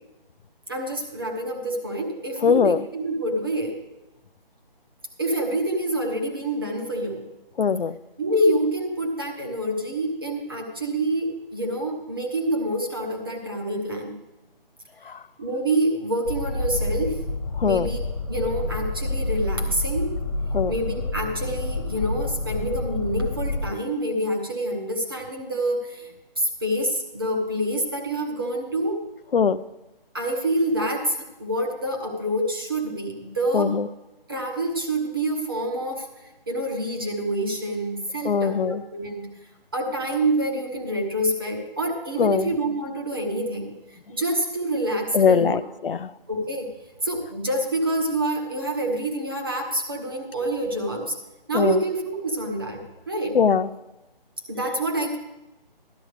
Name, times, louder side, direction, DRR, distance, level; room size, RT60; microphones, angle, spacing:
voice 1, 0.7-3.8 5.2-7.2 8.2-14.2 15.4-17.3 17.6-20.2 20.7-26.1 26.4-29.0 30.1-33.8 34.3-36.1 36.5-39.3 39.7-43.7 44.1-45.6 46.3-46.7 47.0-51.1 51.5-53.4 54.5-55.2, right 1 dB, 25° right, 2 dB, 1.0 m, -27 dB
voice 2, 2.4-2.8 7.6-7.9 15.1-15.2 17.6-17.9 20.5-20.7 29.3-29.6 33.5-33.8 38.2-38.8 42.2-42.5 45.1-46.1 51.5-51.8 53.3-53.7, left 6 dB, 70° left, 15 dB, 0.5 m, -21 dB
sound 1, 16.2-23.7, left 2 dB, 30° left, 1.6 m, -28 dB
12.0 x 12.0 x 3.2 m, 0.99 s
hypercardioid pair, 175°, 29 cm